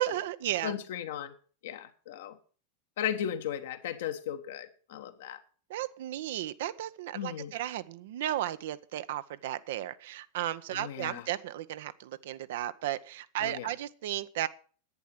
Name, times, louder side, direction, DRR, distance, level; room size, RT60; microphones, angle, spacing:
voice 1, 0.0-0.7 5.7-14.5, right 13 dB, 55° right, 14 dB, 0.7 m, -34 dB
voice 2, 0.6-1.3 1.6-2.4 3.0-5.4 7.1-7.5 10.7-11.3 13.4-13.7, left 9 dB, 55° left, 9 dB, 1.2 m, -36 dB
11.0 x 9.5 x 5.8 m, 0.40 s
figure-of-eight pair, 90°, 0 cm